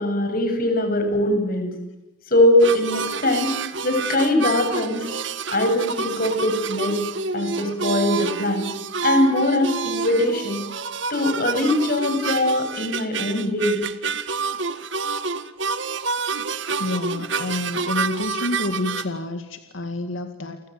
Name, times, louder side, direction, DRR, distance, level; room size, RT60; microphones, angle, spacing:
voice 1, 0.0-1.7 2.3-3.6 3.8-5.1 5.5-7.0 7.3-8.7 9.0-10.6 11.1-13.8, left 1 dB, 45° left, 6 dB, 7.6 m, -21 dB
sound 1, 2.6-19.1, right 4 dB, 70° right, 1.7 m, -28 dB
voice 2, 16.8-20.6, left 2 dB, 85° left, 8 dB, 2.1 m, -28 dB
30.0 x 25.0 x 7.9 m, 0.94 s
head